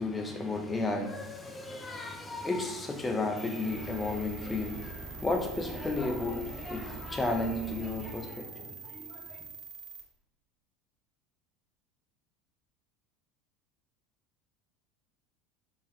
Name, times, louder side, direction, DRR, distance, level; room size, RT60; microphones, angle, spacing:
voice 1, 0.0-9.5, left 2 dB, 15° left, 0.4 m, -33 dB
sound 1, 3.4-10.0, right 4 dB, 50° right, 0.5 m, -44 dB
3.3 x 2.1 x 3.0 m
figure-of-eight pair, 70°, 0 cm